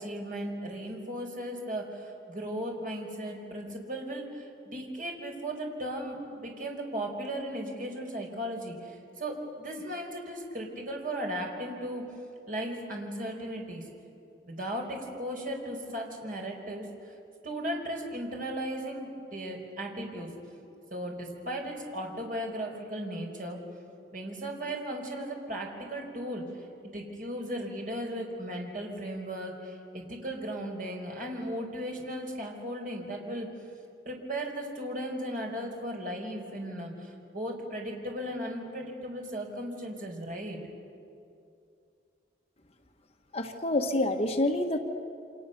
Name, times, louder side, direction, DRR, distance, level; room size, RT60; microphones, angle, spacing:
voice 1, 0.0-12.1 12.5-13.8 14.4-16.8 17.4-20.3 20.9-23.6 24.1-26.5 26.9-33.5 34.0-40.6, right 1 dB, 50° right, 1 dB, 4.7 m, -36 dB
voice 2, 43.3-44.8, left 1 dB, 35° left, 4 dB, 1.5 m, -27 dB
29.0 x 26.5 x 6.9 m, 2.6 s
head